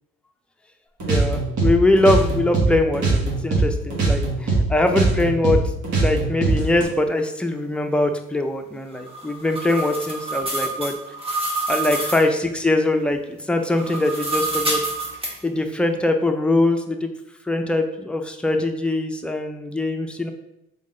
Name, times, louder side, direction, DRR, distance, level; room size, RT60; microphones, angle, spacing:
sound 1, 1.0-3.7 3.9-6.8, right 3 dB, 75° right, 1.6 m, -21 dB
voice 1, 1.1-5.6 5.9-11.0 11.7-14.8 15.4-17.1 17.5-20.3, left 2 dB, 5° left, 5 dB, 0.4 m, -22 dB
sound 2, 9.0-12.3 13.6-15.3, right 2 dB, 20° right, 1.2 m, -27 dB
3.7 x 3.7 x 3.8 m, 0.86 s
cardioid pair, 90°, 30 cm